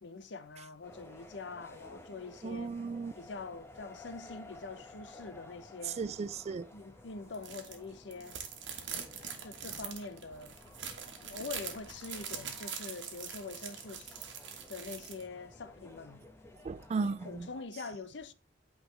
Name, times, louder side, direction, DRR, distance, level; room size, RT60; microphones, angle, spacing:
voice 1, 0.0-2.7 3.2-6.0 6.7-8.4 9.4-10.6 11.2-14.2 14.7-16.3 17.0-18.3, left 4 dB, 70° left, 0.7 m, -44 dB
sound 1, 0.8-17.6, left 2 dB, 15° left, 0.9 m, -55 dB
voice 2, 2.4-3.1 6.0-6.7 16.6-17.5, right 4 dB, 35° right, 0.3 m, -35 dB
sound 2, 7.3-7.8 8.1-15.2, right 7 dB, 85° right, 1.4 m, -43 dB
8.7 x 4.8 x 3.2 m
head